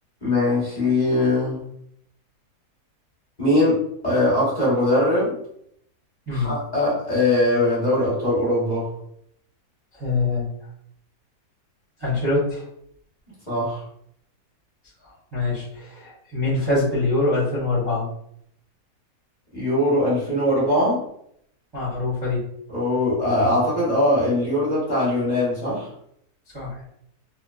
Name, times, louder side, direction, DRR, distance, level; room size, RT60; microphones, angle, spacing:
voice 1, 0.2-1.6 3.4-5.3 6.3-8.9 13.5-13.8 19.5-21.0 22.7-25.9, left 1 dB, 35° left, -9 dB, 1.0 m, -21 dB
voice 2, 9.9-10.5 12.0-12.6 15.3-18.1 21.7-22.4 26.5-26.8, left 2 dB, 25° right, -9 dB, 0.5 m, -24 dB
3.0 x 2.1 x 2.2 m, 0.71 s
omnidirectional pair, 1.7 m